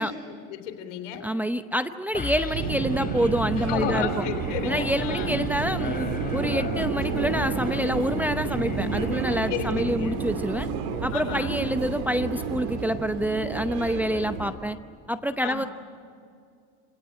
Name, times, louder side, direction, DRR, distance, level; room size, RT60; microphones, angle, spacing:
voice 1, 0.0-1.2 3.6-5.3 9.5-10.2 11.1-11.6 15.4-15.7, left 9 dB, 90° left, 6 dB, 3.2 m, -33 dB
voice 2, 1.2-4.2 4.6-10.7 11.0-14.8 15.1-15.7, equal, 5° right, 9 dB, 0.7 m, -27 dB
sound 1, 2.1-10.4, left 3 dB, 25° left, 3.2 m, -37 dB
Subway metro underground, 2.5-14.5, right 4 dB, 75° right, 3.1 m, -30 dB
27.0 x 17.5 x 10.0 m, 2.3 s
supercardioid pair, 105°, 35 cm